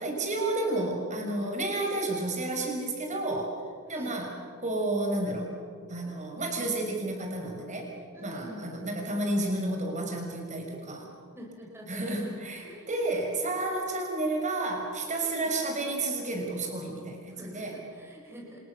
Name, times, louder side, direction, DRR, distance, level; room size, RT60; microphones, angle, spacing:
voice 1, 0.0-3.5 3.9-4.3 4.6-5.5 5.9-7.9 8.2-11.1 11.9-17.8, right 2 dB, 35° right, 1 dB, 5.8 m, -31 dB
voice 2, 8.1-9.0 11.3-12.0 12.6-13.0 15.4-15.5 17.3-18.6, equal, 10° right, -2 dB, 4.4 m, -46 dB
29.5 x 26.5 x 7.0 m, 2.2 s
head